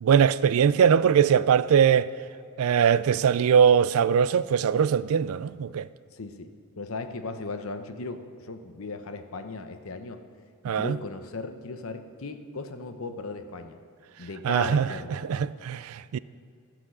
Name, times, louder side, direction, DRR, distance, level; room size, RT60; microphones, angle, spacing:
voice 1, 0.0-2.1 2.6-5.9 10.6-11.0 14.4-16.2, right 7 dB, 70° right, 0.3 m, -21 dB
voice 2, 6.1-10.2 10.6-13.8 14.2-15.5, left 3 dB, 65° left, 0.8 m, -37 dB
14.5 x 6.0 x 6.3 m
head